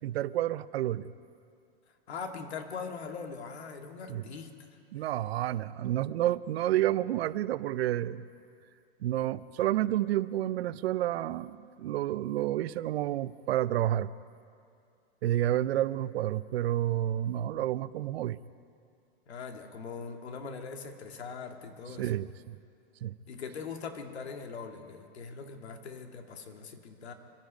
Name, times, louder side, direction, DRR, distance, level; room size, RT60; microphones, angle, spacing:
voice 1, 0.0-1.1 4.1-4.2 4.9-8.2 9.0-14.1 15.2-18.4 22.0-22.6 23.0-23.2, right 13 dB, 75° right, 17 dB, 0.6 m, -30 dB
voice 2, 2.1-4.6 19.3-22.1 23.3-27.1, left 5 dB, 90° left, 5 dB, 2.0 m, -41 dB
25.0 x 10.5 x 5.2 m, 2.4 s
hypercardioid pair, 140°, 32 cm